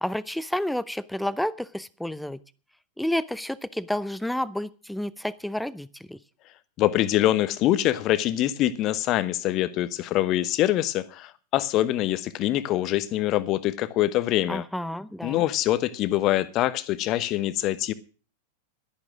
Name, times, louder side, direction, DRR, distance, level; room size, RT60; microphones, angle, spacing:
voice 1, 0.0-2.4 3.0-6.2 14.5-15.4, left 1 dB, ahead, 0.6 m, -30 dB
voice 2, 6.8-14.6 15.2-17.9, left 14 dB, 35° left, 1.0 m, -24 dB
12.0 x 11.0 x 6.2 m
figure-of-eight pair, 90°, 0 cm